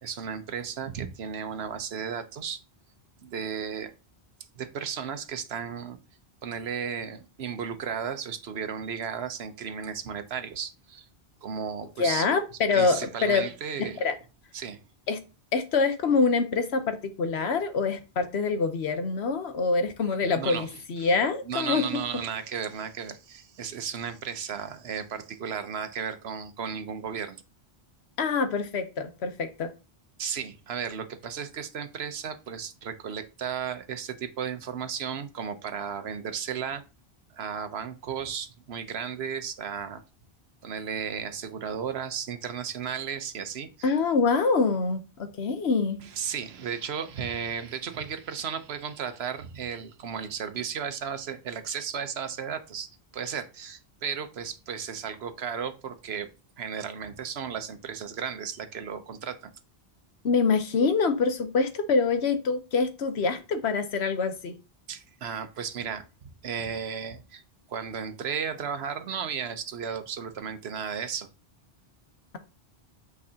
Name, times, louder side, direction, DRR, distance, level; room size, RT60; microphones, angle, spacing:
voice 1, 0.0-2.6 3.2-3.9 4.5-6.0 6.4-11.0 11.4-12.3 12.7-14.1 14.5-14.8 20.4-21.1 21.4-27.4 30.2-36.8 37.3-40.0 40.6-43.9 46.0-52.9 53.1-56.3 56.6-59.5 64.9-67.4 67.7-71.3, right 7 dB, 75° right, 9 dB, 1.0 m, -34 dB
voice 2, 12.0-13.4 14.0-14.1 15.1-15.2 15.5-21.8 28.2-29.7 43.8-46.0 60.2-64.5, left 4 dB, 85° left, 8 dB, 1.2 m, -25 dB
8.7 x 4.6 x 2.8 m, 0.31 s
omnidirectional pair, 1.1 m